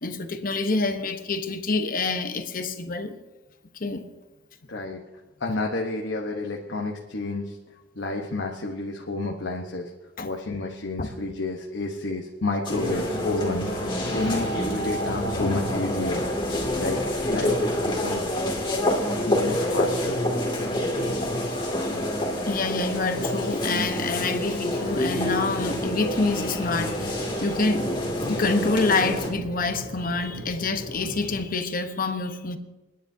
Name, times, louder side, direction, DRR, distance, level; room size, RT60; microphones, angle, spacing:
voice 1, 0.0-3.2 3.7-4.1 10.2-10.3 11.0-11.1 22.5-27.9 28.3-32.6, left 3 dB, 50° left, 1.0 m, -27 dB
voice 2, 4.7-5.0 5.4-7.6 8.0-9.9 10.2-17.0 17.3-18.2 19.1-20.2, left 2 dB, 75° left, 1.1 m, -30 dB
sound 1, 12.6-29.3, left 1 dB, 25° left, 2.5 m, -27 dB
sound 2, 24.7-31.4, equal, 80° right, 3.3 m, -39 dB
29.0 x 10.0 x 2.8 m
head